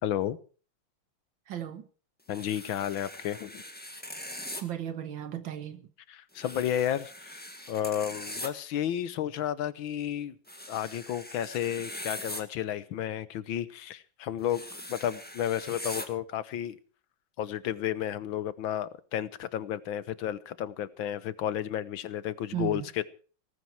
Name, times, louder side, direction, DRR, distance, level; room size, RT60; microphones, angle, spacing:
voice 1, 0.0-0.4 2.3-3.6 6.1-10.4 10.7-16.8 17.4-23.0, left 10 dB, 80° left, 1.7 m, -32 dB
voice 2, 1.5-1.9 4.6-5.9 22.5-22.9, right 11 dB, 75° right, 2.0 m, -35 dB
sound 1, 2.3-4.6 6.4-8.5 10.5-12.4 14.4-16.1, left 1 dB, 5° left, 1.6 m, -41 dB
17.5 x 15.0 x 4.6 m
omnidirectional pair, 2.1 m